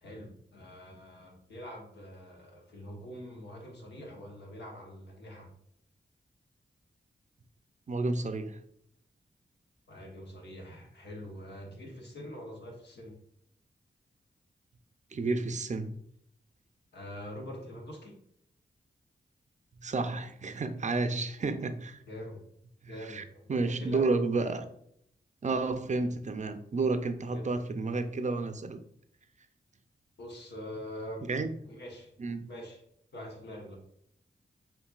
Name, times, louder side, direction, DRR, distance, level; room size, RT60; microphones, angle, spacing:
voice 1, 0.0-5.5 9.9-13.2 16.9-18.2 22.1-22.4 22.9-24.2 27.3-27.5 30.2-31.3 31.7-32.1 32.5-32.8 33.1-33.8, equal, 75° left, 0 dB, 1.1 m, -44 dB
voice 2, 7.9-8.6 15.1-16.0 19.8-22.0 22.8-23.2 23.5-24.7 25.4-28.8 31.3-31.5 32.2-32.5, right 3 dB, 40° right, 9 dB, 0.5 m, -31 dB
5.2 x 2.6 x 2.4 m, 0.71 s
cardioid pair, 45°, 18 cm